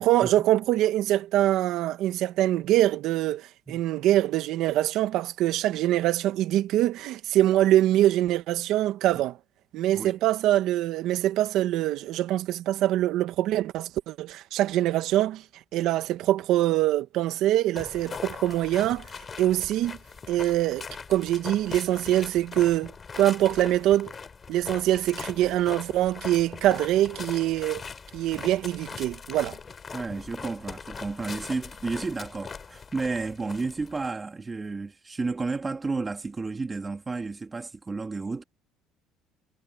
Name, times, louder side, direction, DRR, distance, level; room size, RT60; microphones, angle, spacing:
voice 1, 0.0-9.4 9.7-15.4 15.7-19.0 19.4-20.0 20.3-24.1 24.5-27.8 28.1-29.6, right 14 dB, 60° right, 1.6 m, -24 dB
sound 1, 17.7-34.1, left 5 dB, 25° left, 4.4 m, -41 dB
voice 2, 29.9-38.4, right 3 dB, 15° right, 2.7 m, -32 dB
cardioid pair, 140°, 0 cm